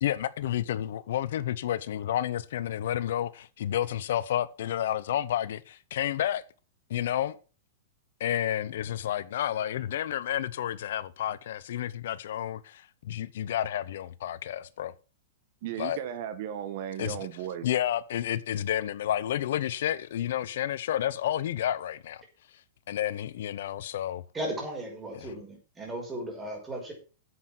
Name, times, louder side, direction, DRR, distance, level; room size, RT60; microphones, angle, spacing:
voice 1, 0.0-6.4 6.9-7.4 8.2-14.9 15.8-16.0 17.0-17.2 17.6-22.2 22.9-24.2 25.1-25.3, left 11 dB, 70° left, 0.8 m, -30 dB
voice 2, 15.6-17.7, right 10 dB, 55° right, 1.3 m, -35 dB
voice 3, 24.3-26.9, right 1 dB, 15° right, 5.4 m, -36 dB
9.7 x 7.9 x 6.1 m
hypercardioid pair, 135°, 0 cm